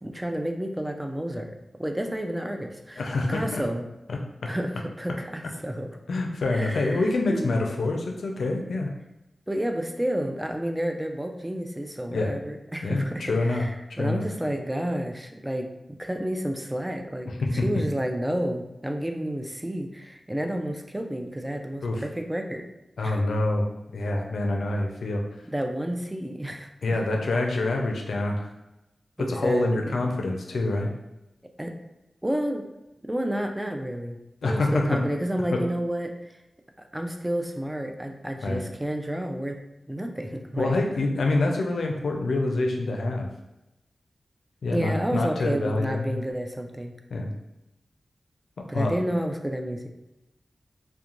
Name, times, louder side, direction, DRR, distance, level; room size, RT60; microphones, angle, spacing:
voice 1, 0.0-3.0 3.3-3.9 4.5-6.0 6.5-7.5 9.5-22.6 23.0-23.2 25.5-27.0 29.2-30.0 31.6-31.7 32.2-32.6 33.0-36.3 36.8-39.6 39.9-40.8 44.7-46.9 48.7-49.9, equal, 10° right, 4 dB, 0.3 m, -30 dB
voice 2, 3.0-3.6 4.1-4.5 6.1-8.9 12.1-12.3 12.8-13.6 13.9-14.2 17.4-17.6 21.8-22.0 23.0-23.7 23.9-25.2 26.8-28.5 29.2-30.9 34.4-35.0 35.5-35.6 38.4-38.6 40.6-43.3 44.6-46.2 47.1-47.3 48.7-48.9, left 2 dB, 90° left, 2 dB, 0.4 m, -26 dB
2.4 x 2.1 x 2.9 m, 0.95 s
wide cardioid pair, 75°, 0 cm